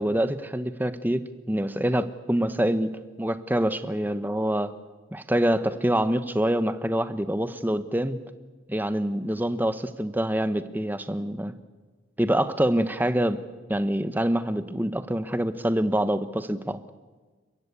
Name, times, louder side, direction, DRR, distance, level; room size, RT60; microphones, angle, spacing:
voice 1, 0.0-4.7 5.1-8.2 8.7-11.5 12.2-13.4 13.7-16.8, right 1 dB, 10° right, 12 dB, 0.8 m, -26 dB
29.5 x 15.0 x 8.4 m, 1.3 s
head